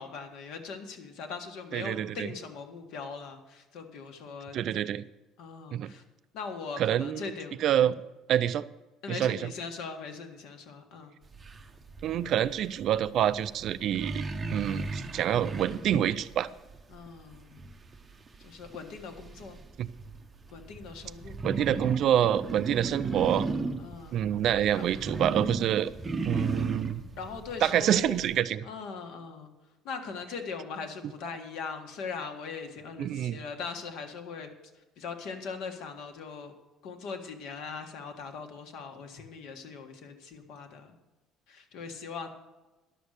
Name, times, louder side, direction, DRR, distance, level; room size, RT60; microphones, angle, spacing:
voice 1, 0.0-4.6 5.4-6.0 6.3-7.9 9.0-11.1 16.9-17.6 18.4-19.6 20.5-21.4 23.8-24.2 24.7-24.8 27.2-28.2 28.6-29.5 29.8-34.5 35.0-36.5 36.8-40.9 41.5-42.3, left 5 dB, 60° left, 6 dB, 1.6 m, -40 dB
voice 2, 1.7-2.3 4.5-5.0 5.7-5.9 6.8-7.3 7.6-8.0 8.3-8.6 9.1-9.5 12.0-14.2 14.5-16.5 19.8-19.9 21.4-23.5 24.1-25.9 26.3-27.0 27.6-28.7 33.0-33.4, right 10 dB, 45° right, 14 dB, 0.4 m, -27 dB
sound 1, 11.3-28.4, right 3 dB, 15° right, 0.7 m, -36 dB
11.5 x 7.1 x 6.5 m, 1.1 s
cardioid pair, 175°, 0 cm